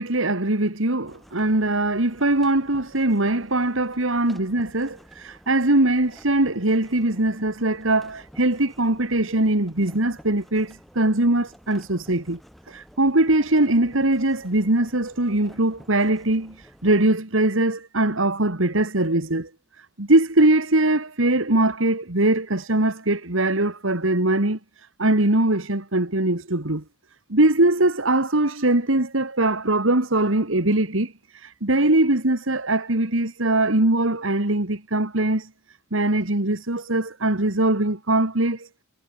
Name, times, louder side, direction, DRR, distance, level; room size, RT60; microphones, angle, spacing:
voice 1, 0.0-12.4 12.7-19.5 20.0-24.6 25.0-26.8 27.3-35.5 35.9-38.7, right 2 dB, 70° right, 2.5 m, -21 dB
sound 1, 1.1-17.1, equal, ahead, 7.7 m, -51 dB
head